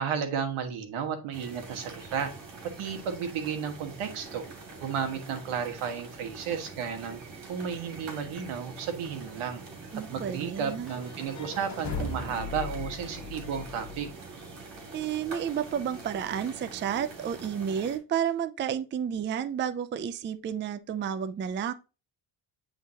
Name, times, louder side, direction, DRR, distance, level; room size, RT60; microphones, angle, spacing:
voice 1, 0.0-2.3 2.8-4.5 4.8-7.2 7.5-9.6 9.9-14.1, right 7 dB, 80° right, 1.6 m, -33 dB
sound 1, 1.3-18.0, right 3 dB, 60° right, 2.8 m, -44 dB
voice 2, 9.9-10.9 14.9-21.7, right 8 dB, 25° right, 0.4 m, -31 dB
sound 2, 10.8-14.8, left 4 dB, 35° left, 1.4 m, -38 dB
9.2 x 3.8 x 2.8 m
cardioid pair, 100°, 48 cm